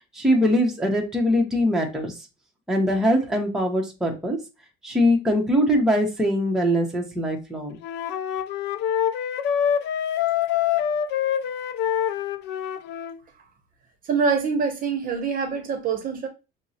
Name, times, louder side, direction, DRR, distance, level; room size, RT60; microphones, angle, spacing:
voice 1, 0.1-2.2 2.7-4.4 4.8-7.8, equal, ahead, 0.7 m, -22 dB
Wind instrument woodwind instrument, 7.8-13.2, left 9 dB, 55° left, 0.4 m, -25 dB
voice 2, 14.1-16.3, right 5 dB, 40° right, 0.7 m, -24 dB
5.9 x 2.0 x 2.7 m
cardioid pair, 150°, 21 cm